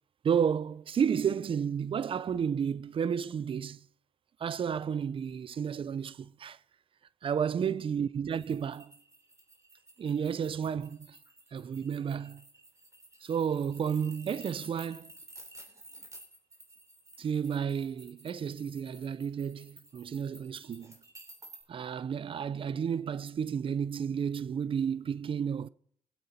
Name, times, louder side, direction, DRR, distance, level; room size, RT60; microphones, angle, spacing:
voice 1, 0.2-3.9 4.4-6.6 7.2-8.9 10.0-11.2 11.5-12.4 13.2-15.1 17.2-21.0 21.7-25.7, right 7 dB, 50° right, 0.5 m, -32 dB
sound 1, 8.3-21.6, right 2 dB, 25° right, 3.3 m, -53 dB
21.5 x 8.0 x 4.2 m
cardioid pair, 65°, 12 cm